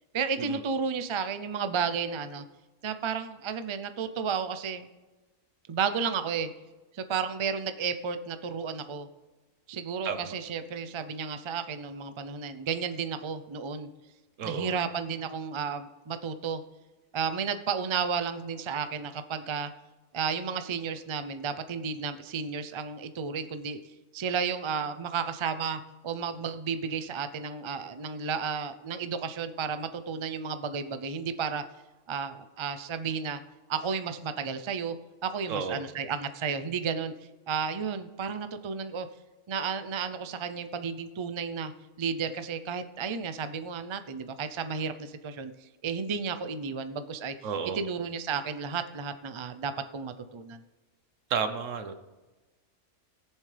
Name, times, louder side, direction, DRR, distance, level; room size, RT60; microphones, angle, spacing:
voice 1, 0.1-2.4 2.8-4.9 5.7-6.5 6.9-9.1 9.7-13.9 14.4-16.6 17.1-19.7 20.1-23.8 24.1-31.6 32.1-33.4 33.7-35.0 35.2-37.1 37.5-39.1 39.5-41.7 42.0-45.5 45.8-47.5 47.7-50.6, right 6 dB, 50° right, 10 dB, 0.3 m, -32 dB
voice 2, 14.4-14.7 35.5-35.9 47.4-47.8 51.3-51.9, right 6 dB, 70° right, 9 dB, 1.2 m, -32 dB
20.0 x 7.3 x 3.3 m, 1.2 s
omnidirectional pair, 1.4 m